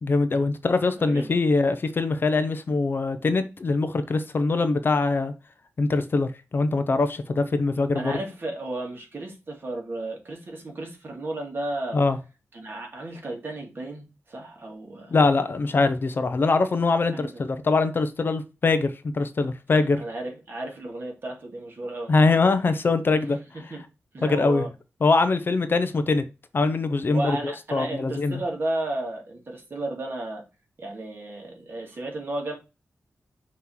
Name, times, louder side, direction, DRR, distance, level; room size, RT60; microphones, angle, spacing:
voice 1, 0.0-5.3 5.8-8.2 11.9-12.2 15.1-20.0 22.1-23.4 24.2-24.6 25.0-26.2 26.5-28.4, left 3 dB, 45° left, 0.7 m, -23 dB
voice 2, 1.0-1.3 7.9-12.0 12.5-15.2 17.1-17.3 19.7-22.1 23.7-23.8 24.1-24.7 27.1-30.4 30.8-32.5, right 2 dB, 45° right, 2.2 m, -33 dB
5.9 x 3.1 x 5.6 m
wide cardioid pair, 145°, 5 cm